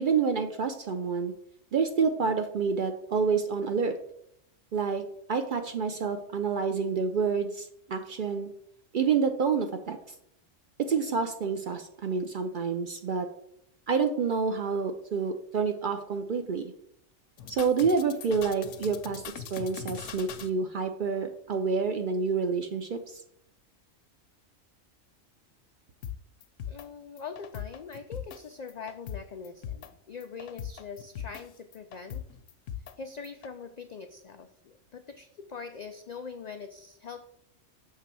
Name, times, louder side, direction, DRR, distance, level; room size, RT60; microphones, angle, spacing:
voice 1, 0.0-1.3 1.7-3.9 4.7-5.0 5.3-8.5 8.9-10.0 10.8-13.3 13.9-16.7 17.5-19.2 19.5-23.2, right 5 dB, 60° right, 6 dB, 0.5 m, -28 dB
sound 1, 17.4-20.5 26.0-26.1 26.4-26.9 27.2-28.4 28.7-29.2 29.4-29.9 30.2-31.4 31.7-32.9 33.2-33.5, left 9 dB, 70° left, 0.9 m, -40 dB
voice 2, 26.7-32.2 33.0-37.3, left 5 dB, 90° left, 7 dB, 0.3 m, -43 dB
6.5 x 3.4 x 6.0 m, 0.72 s
omnidirectional pair, 1.3 m